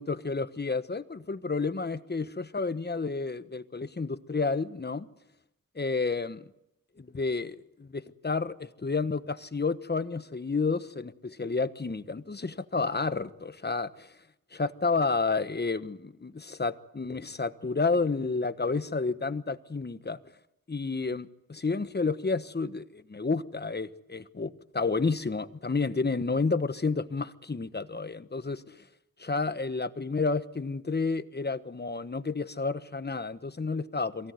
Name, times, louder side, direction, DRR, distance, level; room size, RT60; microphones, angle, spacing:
voice 1, 0.0-5.1 5.7-6.4 7.0-14.1 14.5-20.2 20.7-28.8 29.2-34.3, left 4 dB, 30° left, 1.2 m, -30 dB
23.0 x 17.0 x 9.5 m
cardioid pair, 55°, 35 cm